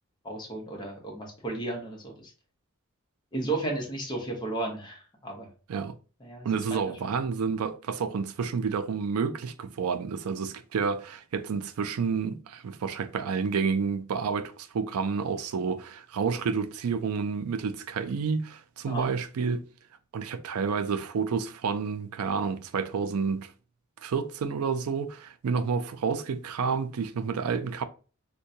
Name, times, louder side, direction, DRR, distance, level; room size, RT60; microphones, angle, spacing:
voice 1, 0.2-2.3 3.3-5.5 6.2-6.6 18.9-19.1, right 2 dB, 20° left, 0.9 m, -34 dB
voice 2, 6.4-19.7 20.1-23.5 24.0-27.8, right 5 dB, 90° right, 0.4 m, -29 dB
3.6 x 2.2 x 2.6 m
head